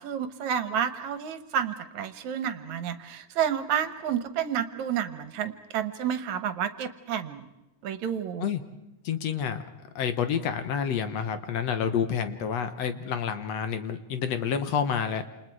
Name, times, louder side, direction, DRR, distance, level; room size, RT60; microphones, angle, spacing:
voice 1, 0.0-7.5 7.8-8.5, right 8 dB, 70° right, 12 dB, 2.4 m, -30 dB
voice 2, 9.0-9.6 10.0-15.2, left 7 dB, 65° left, 10 dB, 2.2 m, -29 dB
28.5 x 28.0 x 4.8 m, 0.96 s
omnidirectional pair, 3.5 m